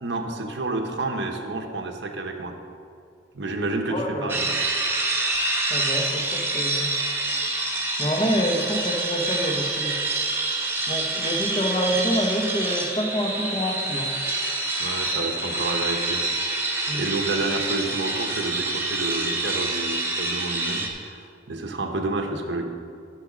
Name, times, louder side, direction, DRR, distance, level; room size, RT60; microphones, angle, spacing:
voice 1, 0.0-2.5 3.3-4.5 14.8-16.2 16.9-22.6, right 2 dB, 70° right, 3 dB, 0.9 m, -29 dB
voice 2, 3.9-4.4 5.7-7.0 8.0-10.3 10.9-14.1 16.9-17.0, equal, 25° left, 2 dB, 1.1 m, -27 dB
sound 1, 4.3-20.9, right 2 dB, 15° right, 1.1 m, -27 dB
10.5 x 6.3 x 6.1 m, 2.4 s
head